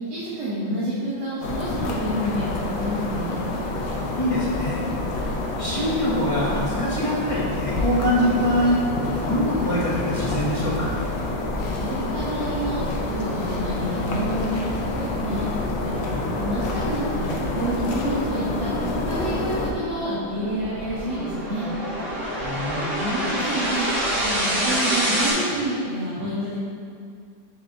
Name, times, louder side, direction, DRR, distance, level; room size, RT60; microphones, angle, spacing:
voice 1, 0.1-3.4 11.8-15.5 15.7-15.9 16.4-18.7 19.1-21.7 22.9-23.8 24.1-26.5, right 1 dB, 70° right, -10 dB, 2.0 m, -29 dB
sound 1, 1.4-19.7, left 2 dB, 85° left, 1.6 m, -27 dB
voice 2, 4.1-4.8 5.6-8.8 9.1-10.9 22.4-22.9, equal, 20° left, -8 dB, 1.2 m, -24 dB
sound 2, 18.6-25.3, equal, 50° right, 2.1 m, -27 dB
9.2 x 3.6 x 3.9 m, 2.3 s
omnidirectional pair, 2.0 m